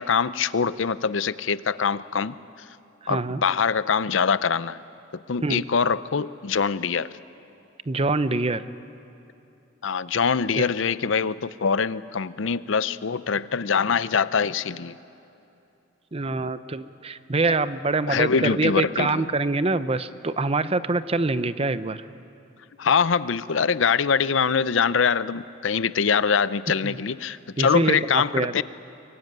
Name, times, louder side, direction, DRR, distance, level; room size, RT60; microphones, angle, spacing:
voice 1, 0.0-2.4 3.1-4.8 5.3-7.1 9.8-15.0 18.1-19.3 22.8-28.6, left 6 dB, 70° left, 16 dB, 0.6 m, -23 dB
voice 2, 3.1-3.4 5.4-5.6 7.9-8.6 10.6-10.7 16.1-22.0 26.8-27.0 27.6-28.6, right 3 dB, 30° right, 13 dB, 0.6 m, -25 dB
23.5 x 23.0 x 9.4 m, 2.8 s
head